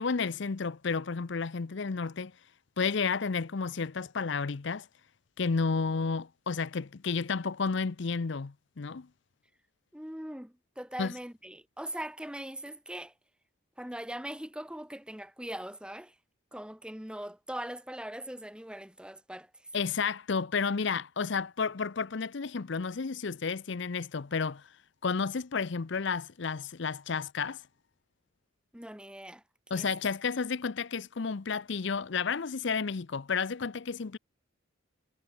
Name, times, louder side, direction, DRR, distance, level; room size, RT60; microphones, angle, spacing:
voice 1, 0.0-2.3 2.8-4.9 5.4-9.1 11.0-11.1 19.7-24.6 25.0-27.6 29.7-34.2, left 5 dB, 55° left, 0.6 m, -31 dB
voice 2, 9.9-13.1 13.8-16.2 16.5-19.5 28.7-29.4 29.7-29.9, right 1 dB, 5° right, 1.7 m, -41 dB
head